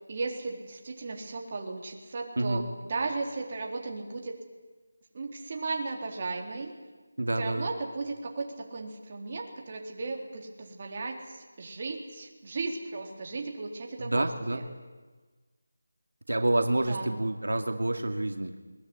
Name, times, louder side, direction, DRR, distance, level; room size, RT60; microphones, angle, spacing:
voice 1, 0.1-2.6 2.9-4.4 5.1-6.7 7.4-14.7 16.9-17.1, right 3 dB, 35° right, 1 dB, 3.8 m, -35 dB
voice 2, 2.4-2.7 7.2-7.7 14.0-14.6 16.3-18.5, right 1 dB, 90° right, 6 dB, 2.3 m, -28 dB
21.5 x 21.0 x 9.8 m, 1.3 s
figure-of-eight pair, 170°, 0 cm